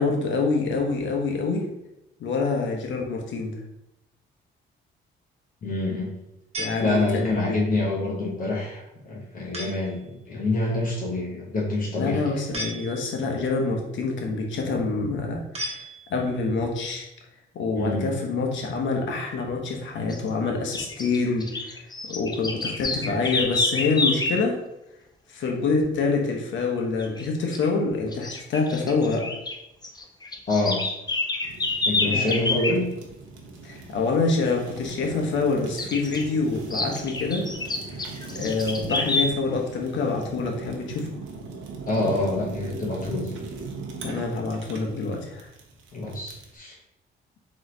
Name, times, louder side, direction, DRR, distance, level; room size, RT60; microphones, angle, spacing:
voice 1, 0.0-1.6 2.2-3.6 6.6-7.6 12.0-15.8 16.1-17.0 17.5-21.8 22.1-24.6 25.3-29.2 32.0-32.8 33.6-37.4 38.3-41.1 44.0-45.5, left 4 dB, 70° left, 1 dB, 1.0 m, -26 dB
voice 2, 5.6-6.1 6.8-12.4 17.7-18.1 30.5-30.8 31.9-32.9 41.9-43.3 45.9-46.8, left 2 dB, 45° left, -3 dB, 1.0 m, -26 dB
sound 1, 6.5-7.5 9.5-10.0 12.5-13.4 15.5-16.4, right 1 dB, 30° right, 1.1 m, -36 dB
sound 2, 20.1-20.3 20.7-24.4 27.0-27.3 27.5-27.7 28.1-29.6 29.8-32.8 35.8-36.2 36.7-39.3, left 2 dB, 20° left, 0.6 m, -28 dB
Fire, 31.4-46.6, right 3 dB, 80° right, 0.8 m, -40 dB
3.9 x 3.1 x 3.8 m, 0.86 s
cardioid pair, 90°, 20 cm